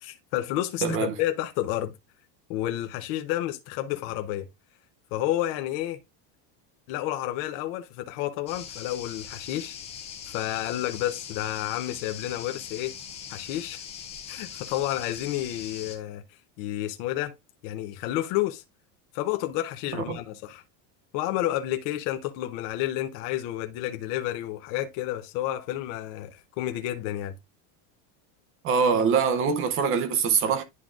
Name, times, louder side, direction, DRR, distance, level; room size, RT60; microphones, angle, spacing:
voice 1, 0.0-1.9 2.5-4.5 5.1-6.0 6.9-9.8 10.3-12.9 13.3-13.8 14.3-16.2 16.6-17.3 17.6-18.6 19.1-20.6 21.1-27.4, left 14 dB, 50° left, 0.7 m, -30 dB
voice 2, 0.8-1.1 20.1-20.2 28.6-30.6, right 6 dB, 30° right, 0.6 m, -23 dB
sound 1, 8.5-16.0, left 8 dB, 15° left, 0.3 m, -41 dB
11.0 x 3.8 x 2.4 m
cardioid pair, 175°, 46 cm